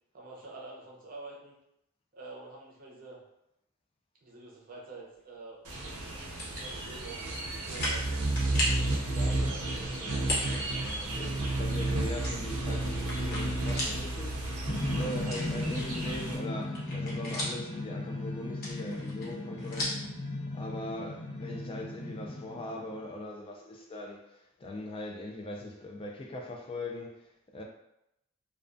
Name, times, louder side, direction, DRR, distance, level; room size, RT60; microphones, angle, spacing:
voice 1, 0.1-1.5 2.1-3.2 4.2-6.1 6.5-8.3 15.0-15.2, right 3 dB, 40° right, 0.6 m, -47 dB
sound 1, 5.6-16.4, right 2 dB, 80° right, 0.5 m, -32 dB
sound 2, 6.2-6.6 7.2-7.3 7.7-8.1 8.4-8.8 10.2-10.6 11.0-11.1 12.2-14.0 14.4-14.5 15.2-16.1 16.5-17.7 18.5-20.1, left 1 dB, 45° left, 0.8 m, -35 dB
voice 2, 9.1-14.5 14.9-27.6, left 1 dB, 25° left, 0.3 m, -41 dB
sound 3, 14.7-23.1, left 1 dB, 70° left, 0.6 m, -37 dB
2.3 x 2.2 x 2.5 m
head